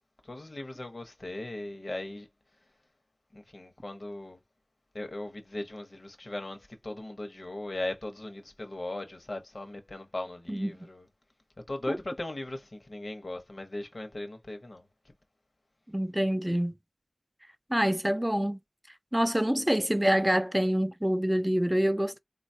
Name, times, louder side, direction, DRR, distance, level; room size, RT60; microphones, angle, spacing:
voice 1, 0.2-2.3 3.3-4.4 4.9-11.1 11.7-15.1 19.3-19.4, left 1 dB, 70° left, 0.9 m, -38 dB
voice 2, 10.5-10.9 11.9-12.0 15.9-16.8 17.7-18.6 19.1-22.2, equal, 10° right, 0.4 m, -26 dB
3.9 x 2.3 x 2.7 m
wide cardioid pair, 45°, 0 cm